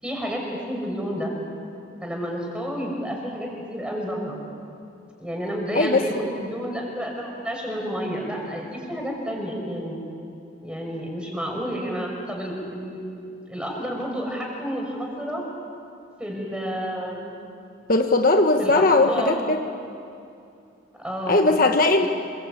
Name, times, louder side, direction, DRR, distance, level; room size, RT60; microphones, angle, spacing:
voice 1, 0.0-1.3 2.0-4.4 5.2-10.0 10.6-13.1 13.5-15.4 16.2-17.3 18.6-19.4 21.0-21.5 22.0-22.1, equal, 5° right, 0 dB, 5.9 m, -30 dB
voice 2, 5.7-6.1 17.9-19.6 21.3-22.1, left 2 dB, 50° left, 4 dB, 1.3 m, -19 dB
27.0 x 22.5 x 8.8 m, 2.6 s
head